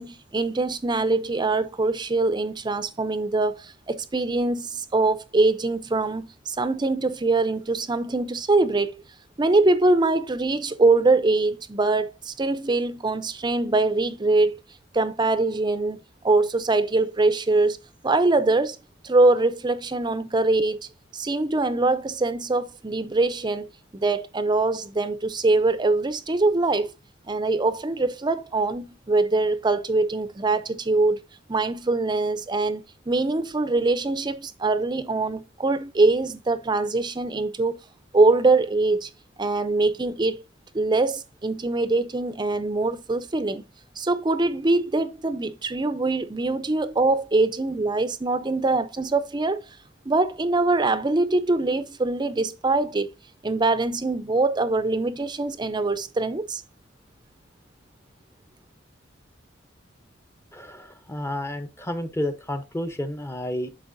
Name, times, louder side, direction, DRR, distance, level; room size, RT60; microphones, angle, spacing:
voice 1, 0.0-8.9 9.4-14.6 14.9-17.8 18.0-18.8 19.0-20.8 21.1-23.7 23.9-26.9 27.3-31.2 31.5-37.8 38.1-39.1 39.4-40.4 40.7-43.6 44.0-49.6 50.1-53.1 53.4-56.6, right 3 dB, 25° right, 0.5 m, -23 dB
voice 2, 60.5-63.7, left 1 dB, 15° left, 0.7 m, -31 dB
11.0 x 4.3 x 2.6 m
head